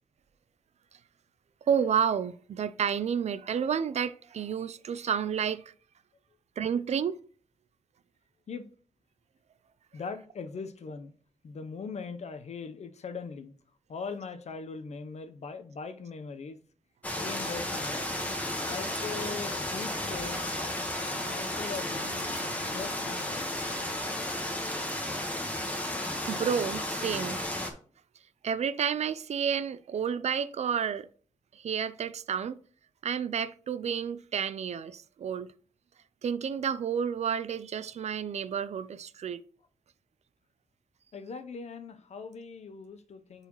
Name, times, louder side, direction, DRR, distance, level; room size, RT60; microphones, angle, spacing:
voice 1, 1.7-5.6 6.6-7.2 26.3-27.4 28.4-31.1 31.5-32.6 33.0-35.5 36.2-39.4, right 7 dB, 70° right, 0.4 m, -30 dB
voice 2, 9.9-11.1 11.4-13.5 13.9-16.6 17.2-18.1 18.7-20.8 21.2-22.0 22.7-23.5 41.1-43.5, left 5 dB, 65° left, 0.7 m, -40 dB
sound 1, 17.0-27.7, left 1 dB, 10° left, 1.2 m, -33 dB
sound 2, 21.9-26.1, left 6 dB, 30° left, 1.4 m, -54 dB
9.3 x 4.1 x 3.0 m
wide cardioid pair, 110°, 12 cm